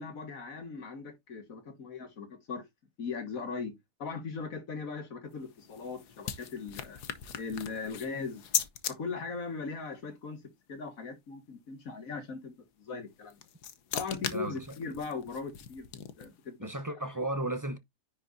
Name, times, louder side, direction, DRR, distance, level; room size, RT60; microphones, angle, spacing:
voice 1, 0.0-2.6 3.0-3.7 4.0-7.0 7.4-8.4 8.9-10.4 10.7-12.5 12.8-13.4 13.9-15.9 16.2-16.7, left 4 dB, 55° left, 2.1 m, -39 dB
sound 1, 5.3-8.9 13.1-16.4, left 9 dB, 75° left, 1.5 m, -38 dB
voice 2, 14.3-14.7 16.6-17.8, right 2 dB, 25° right, 0.4 m, -34 dB
10.0 x 5.2 x 2.6 m
omnidirectional pair, 1.7 m